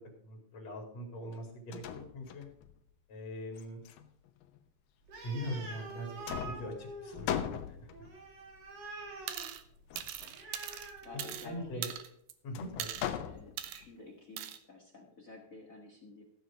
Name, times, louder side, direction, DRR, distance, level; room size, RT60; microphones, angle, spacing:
voice 1, 0.2-2.4 3.1-3.8 5.2-7.9 11.4-11.9 12.4-12.9, equal, 50° left, 0 dB, 3.6 m, -41 dB
sound 1, 1.3-1.4 1.7-2.8 3.6-4.6 5.5-6.0 6.3-8.2 9.9-10.4 12.6-13.9, left 9 dB, 80° left, 2.6 m, -39 dB
Animal, 5.0-11.8, right 2 dB, 50° right, 3.5 m, -47 dB
sound 2, 9.3-9.6 10.0-11.5 11.8-12.3 12.8-13.1 13.6-13.8 14.4-14.6, right 11 dB, 75° right, 2.5 m, -40 dB
voice 2, 11.0-11.9 13.2-16.2, left 2 dB, 35° left, 3 dB, 1.4 m, -51 dB
15.0 x 8.1 x 4.9 m, 0.68 s
omnidirectional pair, 4.0 m